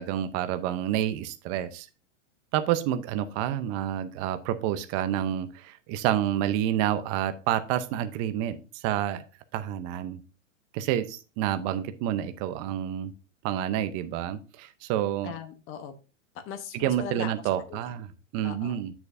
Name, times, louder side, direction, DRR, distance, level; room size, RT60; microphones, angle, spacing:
voice 1, 0.0-1.9 2.5-9.2 9.5-10.2 10.7-13.1 13.4-15.3 16.7-18.9, right 11 dB, 40° right, 10 dB, 0.8 m, -29 dB
voice 2, 15.2-15.9 16.3-17.3 17.7-17.9 18.4-18.8, left 7 dB, 35° left, 8 dB, 1.1 m, -39 dB
7.8 x 7.0 x 2.6 m, 0.32 s
hypercardioid pair, 120°, 39 cm